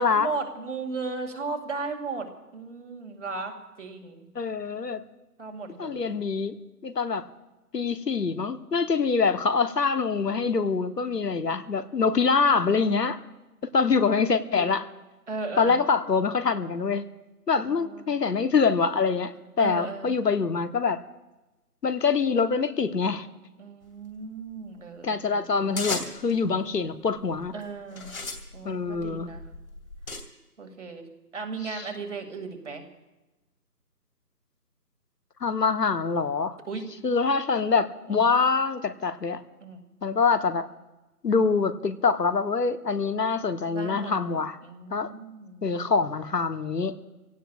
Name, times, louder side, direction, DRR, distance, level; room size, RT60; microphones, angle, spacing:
voice 1, 0.0-2.3 2.5-3.5 3.8-4.3 5.4-6.1 14.6-14.7 15.3-15.8 17.6-18.1 19.6-20.2 23.6-25.8 27.5-28.1 28.5-29.4 30.6-31.1 31.3-32.8 36.7-36.8 38.1-38.2 39.6-39.8 43.7-45.7, right 4 dB, 45° right, 5 dB, 2.3 m, -36 dB
voice 2, 4.3-5.0 5.8-7.2 7.7-13.2 13.7-14.8 15.6-17.1 17.5-21.0 21.8-23.3 25.0-27.5 28.6-29.3 31.6-31.9 35.4-36.6 37.0-39.4 40.0-40.7 41.2-44.6 44.9-45.1 45.6-47.0, left 5 dB, 90° left, 11 dB, 1.1 m, -25 dB
sound 1, 25.8-26.4 27.2-27.5 27.9-30.2, left 3 dB, 55° left, 2.7 m, -35 dB
28.5 x 17.0 x 2.4 m, 1.0 s
figure-of-eight pair, 165°, 48 cm